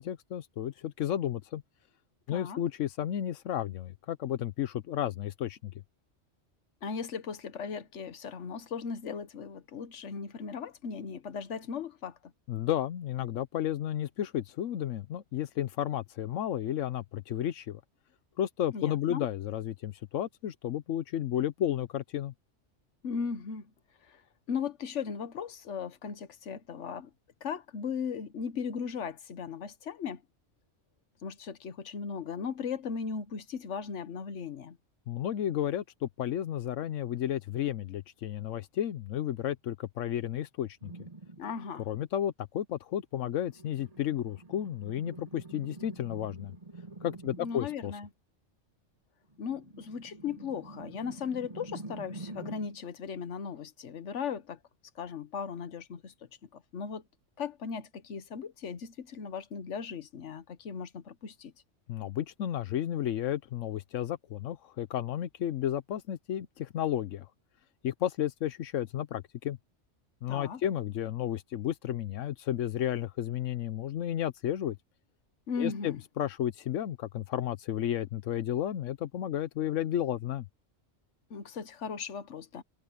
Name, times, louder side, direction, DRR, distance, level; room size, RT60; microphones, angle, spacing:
voice 1, 0.0-1.6 2.3-5.7 12.5-17.8 18.4-22.3 35.1-40.9 41.9-46.5 47.0-47.9 61.9-67.3 67.8-69.6 70.2-74.8 75.6-80.5, left 11 dB, 90° left, 1.1 m, -32 dB
voice 2, 2.3-2.6 6.8-12.3 18.7-19.3 23.0-23.7 24.1-24.2 24.5-27.1 27.4-30.2 31.2-34.8 41.4-41.9 47.4-48.1 49.4-54.6 54.9-56.1 56.4-57.0 57.4-61.5 70.3-70.6 75.5-76.0 81.3-82.6, left 6 dB, 70° left, 1.4 m, -37 dB
sound 1, 40.8-41.6 43.3-47.8 49.3-52.8, right 3 dB, 30° right, 1.6 m, -47 dB
omnidirectional pair, 1.3 m